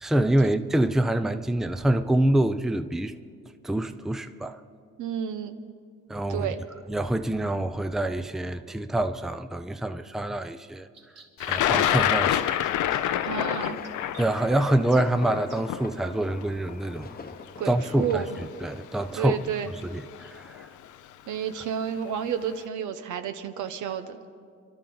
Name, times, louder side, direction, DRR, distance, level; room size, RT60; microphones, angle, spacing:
voice 1, 0.0-3.1 3.6-4.6 6.1-6.5 6.9-10.9 11.5-12.5 14.2-17.2 17.7-18.2 18.6-19.4 19.7-20.7, right 1 dB, ahead, 0.5 m, -26 dB
voice 2, 5.0-5.6 6.3-6.6 13.3-13.8 17.6-18.4 19.2-19.7 21.3-24.2, right 8 dB, 75° right, 1.1 m, -31 dB
sound 1, 10.9-15.9, right 3 dB, 55° right, 2.8 m, -47 dB
Thunder, 11.4-17.4 18.3-18.4 19.6-19.8 20.1-20.6, left 11 dB, 75° left, 0.6 m, -27 dB
sound 2, 12.6-19.4, left 4 dB, 30° left, 1.0 m, -45 dB
27.5 x 12.0 x 3.9 m
cardioid pair, 90°, 30 cm